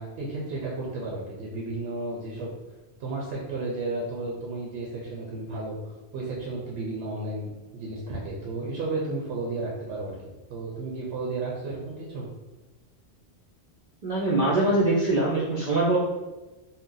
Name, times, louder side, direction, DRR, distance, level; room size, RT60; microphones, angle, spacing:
voice 1, 0.0-2.5 3.0-12.3, right 2 dB, 80° right, -4 dB, 0.9 m, -33 dB
voice 2, 14.0-16.0, right 2 dB, 50° right, -6 dB, 0.5 m, -23 dB
2.7 x 2.1 x 3.7 m, 1.1 s
omnidirectional pair, 1.1 m